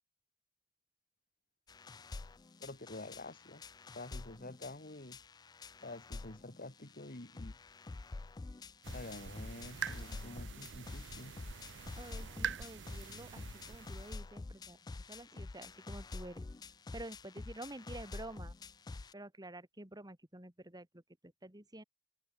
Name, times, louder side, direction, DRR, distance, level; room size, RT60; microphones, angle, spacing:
sound 1, 1.7-19.1, left 3 dB, 20° left, 0.3 m, -48 dB
voice 1, 2.6-3.6 3.9-5.2 5.8-7.6 8.9-11.3, left 2 dB, 50° left, 2.3 m, -48 dB
sound 2, 8.8-14.2, right 7 dB, 70° right, 0.7 m, -45 dB
voice 2, 12.0-14.8 15.1-16.5 16.9-18.5 19.1-21.8, right 1 dB, 20° right, 3.2 m, -49 dB
head